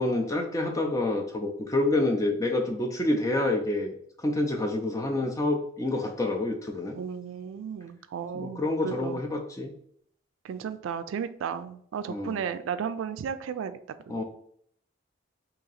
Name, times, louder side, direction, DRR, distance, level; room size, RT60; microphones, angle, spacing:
voice 1, 0.0-7.0 8.3-9.7 12.1-12.4 14.1-14.2, left 2 dB, 15° left, 3 dB, 0.5 m, -28 dB
voice 2, 6.9-9.2 10.4-13.8 14.1-14.2, right 7 dB, 90° right, 11 dB, 0.3 m, -34 dB
2.8 x 2.8 x 4.0 m, 0.65 s
head